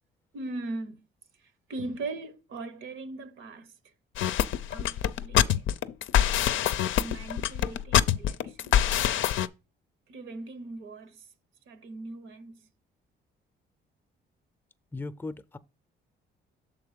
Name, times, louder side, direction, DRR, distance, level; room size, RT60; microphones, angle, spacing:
voice 1, 0.3-1.1 1.7-3.7 4.7-5.7 7.0-8.9 10.1-11.3 11.7-12.7, right 2 dB, 80° right, 0.9 m, -39 dB
sound 1, 4.2-9.5, left 10 dB, 80° left, 0.5 m, -25 dB
voice 2, 14.9-15.6, left 3 dB, 10° left, 0.5 m, -37 dB
6.7 x 3.9 x 5.1 m
cardioid pair, 90°, 20 cm